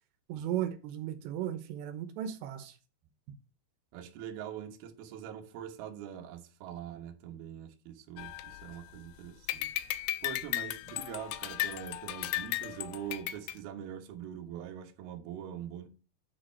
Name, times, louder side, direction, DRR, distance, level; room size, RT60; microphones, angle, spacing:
voice 1, 0.3-2.7, right 11 dB, 90° right, 3.2 m, -35 dB
voice 2, 3.9-15.9, right 9 dB, 70° right, 2.9 m, -43 dB
sound 1, 8.2-9.1 9.5-13.5, left 15 dB, 85° left, 2.4 m, -36 dB
9.5 x 5.0 x 4.4 m
omnidirectional pair, 4.9 m